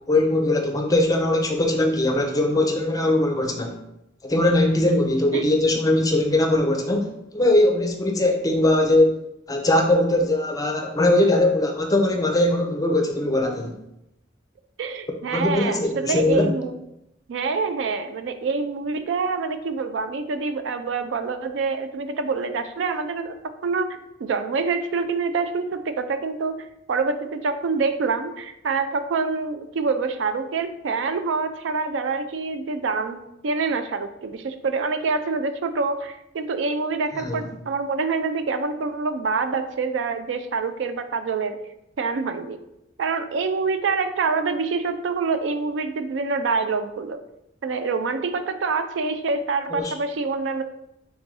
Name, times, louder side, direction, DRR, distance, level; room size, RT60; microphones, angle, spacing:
voice 1, 0.1-3.8 4.2-7.1 7.3-9.2 9.5-13.7 15.3-16.5 37.2-37.4 49.7-49.9, left 1 dB, 20° left, 2 dB, 0.5 m, -20 dB
voice 2, 14.8-16.8 17.3-23.4 23.6-41.6 42.0-42.6 43.0-47.2 47.6-50.6, right 4 dB, 75° right, 9 dB, 0.4 m, -26 dB
3.7 x 2.6 x 4.6 m, 0.85 s
head